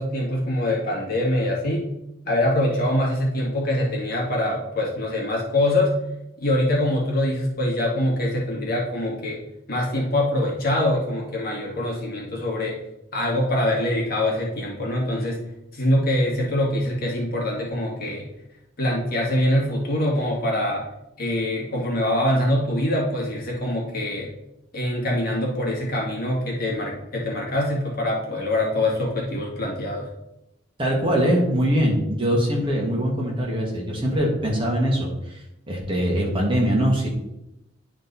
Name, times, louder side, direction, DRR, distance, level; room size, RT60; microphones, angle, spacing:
voice 1, 0.0-1.9 2.3-5.9 6.4-9.4 9.7-12.8 13.1-15.4 15.7-18.2 18.8-20.8 21.2-24.3 24.7-30.1, left 1 dB, 45° left, -3 dB, 2.2 m, -24 dB
voice 2, 30.8-35.4 35.7-37.1, equal, 25° right, -2 dB, 1.8 m, -22 dB
10.5 x 4.4 x 4.1 m, 0.88 s
head